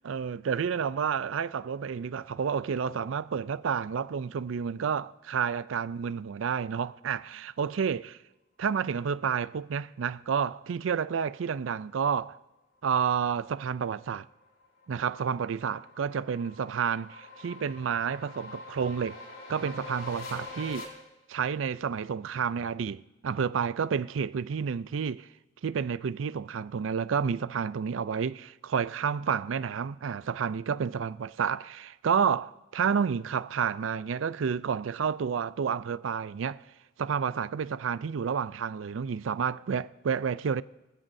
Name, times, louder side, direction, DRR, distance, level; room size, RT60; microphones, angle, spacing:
voice 1, 0.0-8.1 8.6-12.4 12.8-14.3 14.9-19.2 19.5-20.9 21.3-25.3 25.6-36.6 37.0-40.6, right 6 dB, 90° right, 0.4 m, -30 dB
sound 1, 14.3-20.8, left 3 dB, 85° left, 3.7 m, -45 dB
23.0 x 15.0 x 2.7 m
head